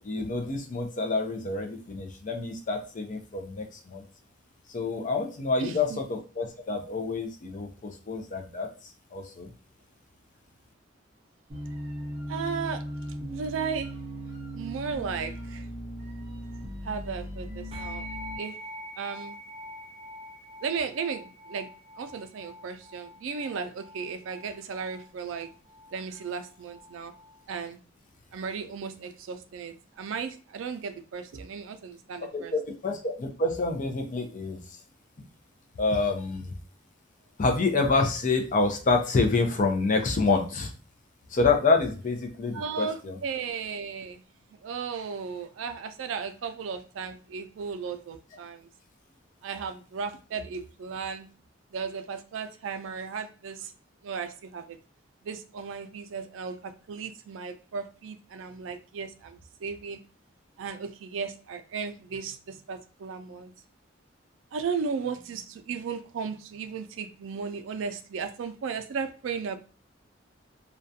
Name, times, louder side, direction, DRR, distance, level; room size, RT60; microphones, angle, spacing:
voice 1, 0.0-4.1 4.7-9.5 32.3-34.8 35.2-35.3 35.8-36.6 37.4-40.7 41.3-43.2, left 3 dB, 45° left, 4 dB, 0.5 m, -27 dB
voice 2, 5.6-6.0 12.3-12.8 13.3-13.9 14.5-15.7 16.8-18.1 18.4-18.6 19.0-19.4 20.6-21.7 22.0-25.5 25.9-27.1 27.5-27.8 28.3-32.5 42.5-44.2 44.6-48.7 49.4-51.3 51.7-53.7 54.0-54.8 55.2-60.0 60.6-63.5 64.5-69.6, right 5 dB, 90° right, 9 dB, 0.4 m, -35 dB
sound 1, 11.5-18.4, equal, 15° right, 1.0 m, -38 dB
sound 2, 17.7-27.4, equal, 30° right, 0.4 m, -45 dB
2.3 x 2.2 x 2.6 m, 0.36 s
head